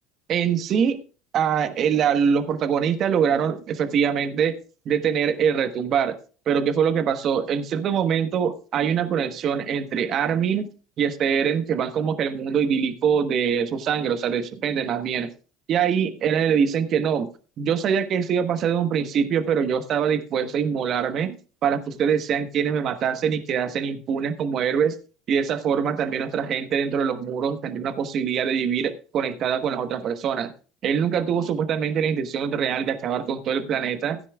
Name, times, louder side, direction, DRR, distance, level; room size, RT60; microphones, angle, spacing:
voice 1, 0.3-1.0 1.3-4.6 4.8-6.2 6.5-10.7 11.0-15.3 15.7-17.3 17.6-21.4 21.6-25.0 25.3-30.5 30.8-34.2, right 7 dB, 50° right, 10 dB, 1.2 m, -23 dB
16.0 x 9.7 x 2.3 m, 0.36 s
hypercardioid pair, 75°, 0 cm